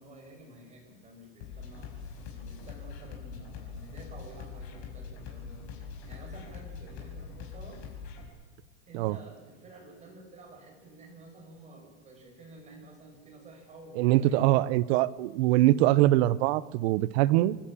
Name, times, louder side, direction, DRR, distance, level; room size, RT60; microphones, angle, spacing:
voice 1, 0.0-7.8 8.9-14.6, right 2 dB, 20° right, 1 dB, 5.7 m, -51 dB
sound 1, 1.4-8.3, left 5 dB, 65° left, 5.6 m, -43 dB
voice 2, 14.0-17.6, right 15 dB, 65° right, 19 dB, 0.8 m, -23 dB
26.5 x 11.5 x 8.6 m, 1.4 s
supercardioid pair, 150°, 34 cm